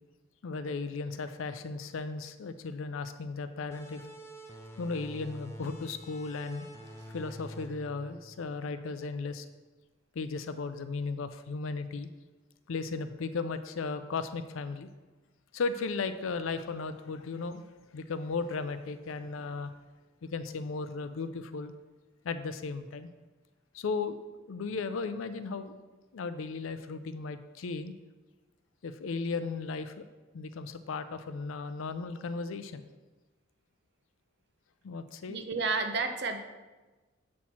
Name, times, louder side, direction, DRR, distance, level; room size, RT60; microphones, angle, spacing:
voice 1, 0.4-4.0 4.8-6.6 7.1-9.5 10.1-12.1 12.7-14.9 15.5-17.6 17.9-19.7 20.2-21.7 22.2-23.1 23.7-24.2 24.5-25.7 26.1-27.9 28.8-30.0 30.3-32.9 34.8-35.4, left 4 dB, 75° left, 11 dB, 0.4 m, -36 dB
sound 1, 3.7-9.0, equal, 15° left, 0.4 m, -47 dB
voice 2, 35.3-36.4, right 4 dB, 50° right, 6 dB, 0.6 m, -31 dB
7.2 x 4.4 x 4.3 m, 1.2 s
head